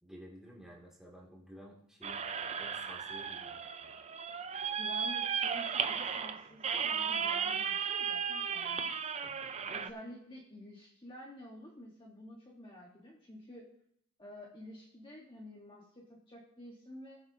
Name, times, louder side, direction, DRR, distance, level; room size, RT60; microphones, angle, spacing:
voice 1, 0.0-2.3 2.6-3.6 9.2-9.5, equal, 5° right, -3 dB, 2.6 m, -52 dB
sound 1, 2.0-9.9, right 7 dB, 30° right, 0.5 m, -35 dB
voice 2, 4.7-8.9 9.7-13.7 14.2-17.2, left 1 dB, 25° left, -2 dB, 1.5 m, -50 dB
19.5 x 7.9 x 2.9 m, 0.71 s
head